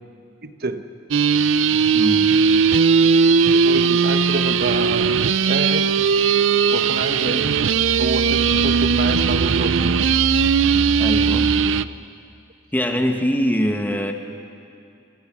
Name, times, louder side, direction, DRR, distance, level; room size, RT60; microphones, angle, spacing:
voice 1, 0.4-0.8 3.5-6.1 6.7-10.1, right 2 dB, 55° right, 8 dB, 1.3 m, -28 dB
sound 1, 1.1-11.8, right 6 dB, 75° right, 0.5 m, -18 dB
voice 2, 1.9-2.3 11.0-11.5 12.7-14.1, equal, 10° left, 4 dB, 1.7 m, -22 dB
sound 2, 4.8-11.6, equal, 30° right, 5.2 m, -31 dB
27.0 x 27.0 x 6.2 m, 2.4 s
head